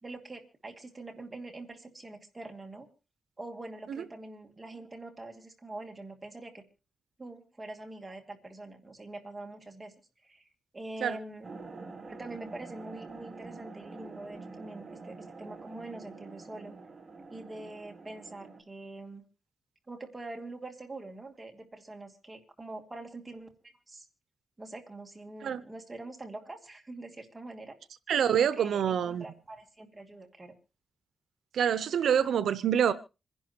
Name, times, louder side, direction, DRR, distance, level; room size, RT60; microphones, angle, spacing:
voice 1, 0.0-2.9 3.4-6.6 7.2-9.9 10.2-10.5 10.7-11.5 12.1-16.8 17.3-19.3 19.9-23.5 23.9-24.1 24.6-27.8 28.4-30.5, right 2 dB, 20° right, 2.4 m, -44 dB
sound 1, 11.4-18.6, right 3 dB, 40° right, 2.7 m, -46 dB
voice 2, 28.1-29.2 31.5-32.9, right 8 dB, 90° right, 0.7 m, -26 dB
26.5 x 11.0 x 2.8 m
wide cardioid pair, 110°, 0 cm